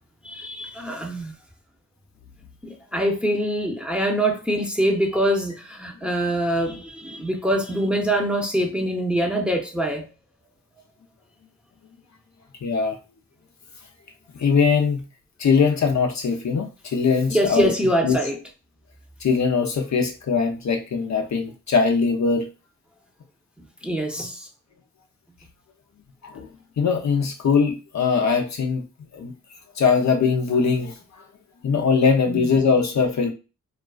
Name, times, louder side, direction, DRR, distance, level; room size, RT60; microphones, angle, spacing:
voice 1, 0.2-1.3 2.6-10.0 17.3-18.4 23.8-24.5 32.3-32.5, right 1 dB, 5° right, 0.7 m, -24 dB
voice 2, 12.6-13.0 14.4-15.0 15.4-17.7 18.0-18.2 19.2-22.5 26.3-26.5 26.8-28.8 29.1-29.3 29.8-30.9 31.6-33.3, left 5 dB, 55° left, 0.6 m, -21 dB
2.4 x 2.3 x 2.3 m
cardioid pair, 50°, 33 cm